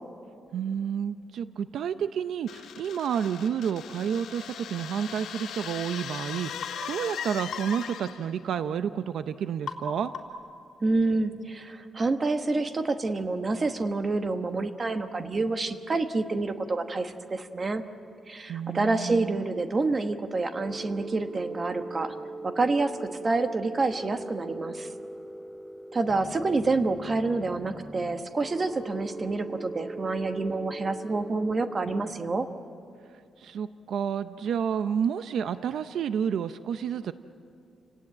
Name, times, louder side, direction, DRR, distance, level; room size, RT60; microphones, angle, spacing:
voice 1, 0.5-10.1 18.5-19.4 33.4-37.1, right 8 dB, 70° right, 11 dB, 0.6 m, -30 dB
sound 1, 2.5-8.4, left 9 dB, 90° left, 1.0 m, -39 dB
sound 2, 6.6-6.8 7.5-7.7 9.7-9.9 10.1-10.5, left 4 dB, 75° left, 2.7 m, -37 dB
voice 2, 10.8-17.8 18.3-22.1 22.4-24.9 25.9-32.5, right 3 dB, 25° right, 7 dB, 1.2 m, -28 dB
Harmonic Horror - Envy, 20.6-32.1, right 2 dB, ahead, 0.8 m, -40 dB
29.5 x 18.0 x 8.8 m, 2.5 s
wide cardioid pair, 170°, 0 cm